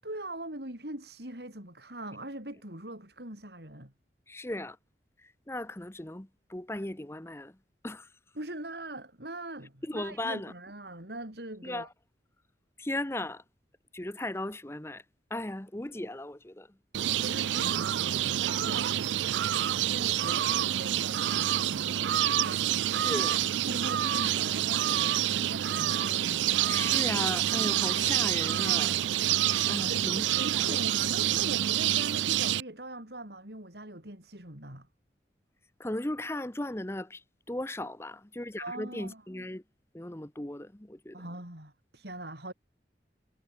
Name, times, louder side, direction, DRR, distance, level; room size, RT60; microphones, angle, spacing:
voice 1, 0.0-3.9 8.3-11.9 17.0-18.9 19.8-23.2 23.7-26.5 29.8-34.9 38.6-39.5 41.1-42.5, right 1 dB, 65° right, 6.1 m, -42 dB
voice 2, 4.3-4.8 5.5-7.5 7.8-8.1 9.9-10.5 11.6-11.9 12.8-13.4 13.9-15.0 15.3-16.7 23.0-23.4 26.7-29.0 29.7-30.2 30.5-30.8 35.8-37.2 37.5-39.6 39.9-41.2, left 1 dB, 15° left, 0.9 m, -36 dB
sound 1, 16.9-32.6, right 12 dB, 90° right, 0.4 m, -27 dB
head